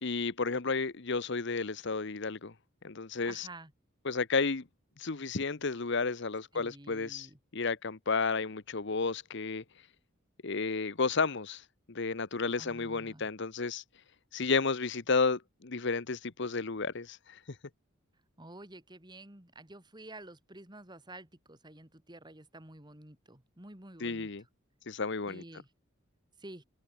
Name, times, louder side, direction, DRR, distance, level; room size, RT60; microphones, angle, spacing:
voice 1, 0.0-2.5 2.8-3.5 4.0-4.6 5.0-7.3 7.5-9.6 10.4-11.6 11.9-13.8 14.3-17.4 24.0-24.4 24.9-25.4, left 4 dB, 60° left, 1.1 m, -32 dB
voice 2, 3.2-3.7 6.5-7.4 12.6-13.3 18.4-24.3 25.2-25.7 26.4-26.6, right 2 dB, 20° right, 2.9 m, -50 dB
open air
head